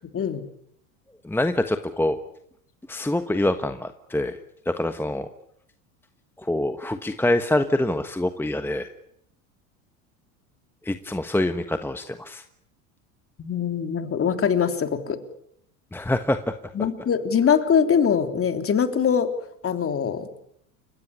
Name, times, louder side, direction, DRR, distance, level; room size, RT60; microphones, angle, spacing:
voice 1, 0.1-0.5 13.4-15.2 16.7-19.3 19.6-20.3, left 7 dB, 30° left, 7 dB, 3.3 m, -22 dB
voice 2, 1.2-2.2 2.9-4.4 4.7-5.3 6.4-8.9 10.8-12.4 15.9-16.4, left 1 dB, 5° left, 8 dB, 1.3 m, -25 dB
29.5 x 16.0 x 9.9 m, 0.75 s
hypercardioid pair, 95°, 43 cm